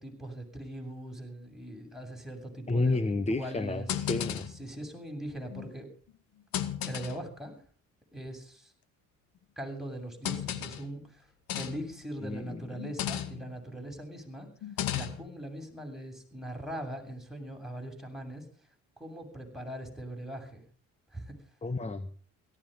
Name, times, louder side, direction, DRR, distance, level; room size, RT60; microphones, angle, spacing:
voice 1, 0.0-3.0 3.3-3.9 4.5-5.9 6.9-7.5 8.1-8.7 9.6-14.5 14.9-18.5 19.0-20.6 21.1-21.4, right 1 dB, ahead, 3 dB, 8.0 m, -41 dB
voice 2, 2.7-4.5 12.2-12.7 21.6-22.1, left 3 dB, 20° left, 14 dB, 1.2 m, -31 dB
sound 1, 3.9-4.6 5.5-5.8 6.5-7.3 8.3-8.4 10.3-10.9 11.5-12.0 12.8-13.6 14.6-15.3, left 10 dB, 70° left, 1.8 m, -34 dB
17.5 x 15.0 x 5.4 m, 0.42 s
supercardioid pair, 70°, 36 cm